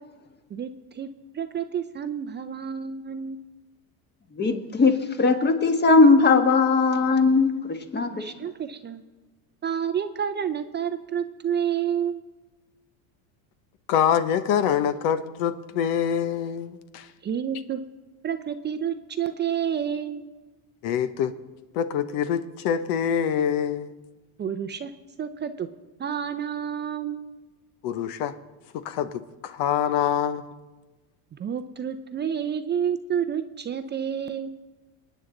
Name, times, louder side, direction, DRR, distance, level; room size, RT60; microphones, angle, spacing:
voice 1, 0.5-1.1 1.3-3.4 8.2-9.0 9.6-12.2 17.2-17.8 18.2-20.3 24.4-24.9 25.2-25.7 26.0-27.3 31.3-34.6, right 8 dB, 25° right, 0.6 m, -29 dB
voice 2, 4.3-8.3, left 3 dB, 25° left, 1.4 m, -19 dB
voice 3, 13.9-17.1 20.8-21.3 21.7-23.9 27.8-28.3 28.8-30.5, left 8 dB, 65° left, 1.0 m, -25 dB
28.0 x 9.3 x 3.9 m
supercardioid pair, 120°, 42 cm